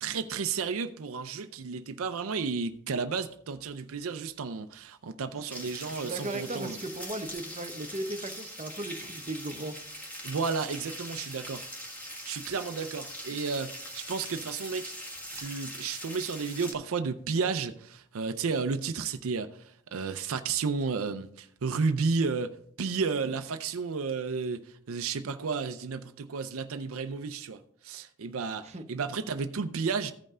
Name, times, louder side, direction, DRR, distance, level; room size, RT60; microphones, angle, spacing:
voice 1, 0.0-6.8 10.2-11.7 12.2-14.9 15.3-22.5 22.8-30.1, right 5 dB, 75° right, 0.5 m, -32 dB
sound 1, 5.5-16.7, equal, 10° left, 1.7 m, -42 dB
voice 2, 5.9-9.8 28.6-28.9, right 1 dB, 30° right, 0.8 m, -37 dB
15.0 x 5.4 x 3.7 m
head